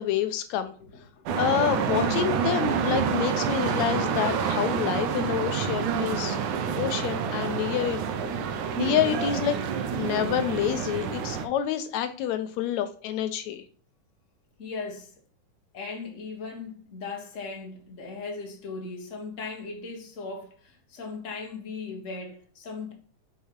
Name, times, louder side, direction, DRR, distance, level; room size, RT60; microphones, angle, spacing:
voice 1, 0.0-0.7 1.3-6.4 6.8-8.0 8.8-9.6 9.9-13.6, left 10 dB, 80° left, 1.7 m, -28 dB
voice 2, 0.8-1.2 8.0-8.2 9.3-9.4 14.6-15.1 15.7-22.9, left 4 dB, 60° left, 0.8 m, -38 dB
sound 1, 1.3-11.4, right 7 dB, 80° right, 2.1 m, -28 dB
5.6 x 4.7 x 4.6 m
omnidirectional pair, 3.5 m